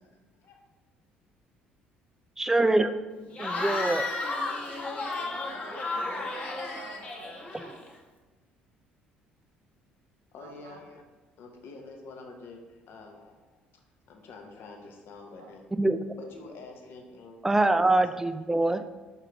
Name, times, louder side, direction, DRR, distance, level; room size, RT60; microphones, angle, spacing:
voice 1, 2.4-2.9 3.4-4.0 7.5-7.6 15.7-16.0 17.4-18.8, right 2 dB, 10° right, 10 dB, 0.3 m, -24 dB
voice 2, 3.0-3.7 5.9-6.3 10.3-11.0 11.4-13.8 14.1-15.6 16.2-17.5 18.1-18.2 18.7-18.8, left 3 dB, 55° left, 3 dB, 0.7 m, -47 dB
Cheering / Crowd, 3.3-8.0, left 2 dB, 30° left, 1.0 m, -33 dB
voice 3, 4.6-7.9 10.4-10.8 15.4-15.5, right 5 dB, 75° right, 3 dB, 0.5 m, -52 dB
4.6 x 3.7 x 3.1 m, 1.2 s
figure-of-eight pair, 50°, 5 cm